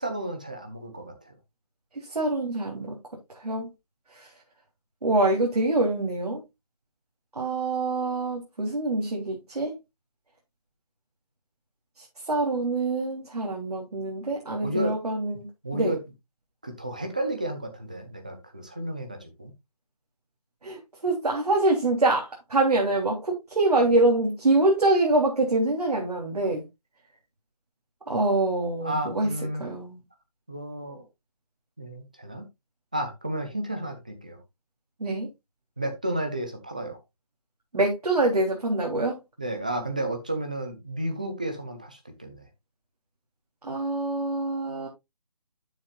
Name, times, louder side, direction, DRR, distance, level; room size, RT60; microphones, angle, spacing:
voice 1, 0.0-1.3 14.6-15.0 15.6-16.0 16.6-19.5 28.8-29.6 30.5-31.0 31.8-32.5 32.9-34.4 35.8-37.0 39.4-42.4, right 1 dB, 10° right, 0.7 m, -32 dB
voice 2, 2.1-3.0 3.4-3.7 4.2-4.3 5.0-6.4 7.4-9.7 12.3-15.5 15.7-15.9 20.6-26.6 28.1-29.3 29.6-30.0 35.0-35.3 37.7-39.2 43.6-44.9, right 2 dB, 75° right, 3.4 m, -25 dB
11.5 x 7.3 x 2.4 m
hypercardioid pair, 180°, 20 cm